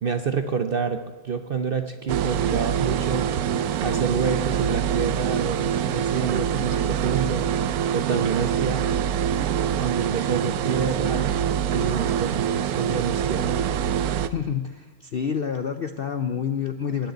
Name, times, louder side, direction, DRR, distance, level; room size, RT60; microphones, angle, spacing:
voice 1, 0.0-3.3 3.8-7.5 7.9-8.9 9.8-11.3 11.7-13.6, right 6 dB, 50° right, 8 dB, 0.7 m, -28 dB
sound 1, 2.1-14.3, right 9 dB, 75° right, 1.1 m, -25 dB
voice 2, 14.3-17.1, left 7 dB, 60° left, 9 dB, 0.6 m, -28 dB
19.5 x 6.6 x 9.3 m, 1.3 s
omnidirectional pair, 1.7 m